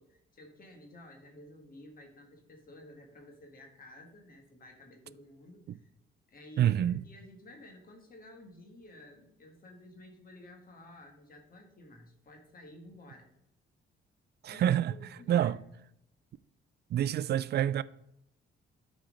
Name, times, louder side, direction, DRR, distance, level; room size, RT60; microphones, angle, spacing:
voice 1, 0.0-5.9 6.3-13.3 14.5-15.5, left 1 dB, 45° left, 1.7 m, -52 dB
voice 2, 6.6-7.0 14.4-14.9 15.3-15.6 16.9-17.8, right 11 dB, 55° right, 0.4 m, -27 dB
8.9 x 4.5 x 5.1 m
cardioid pair, 90°, 20 cm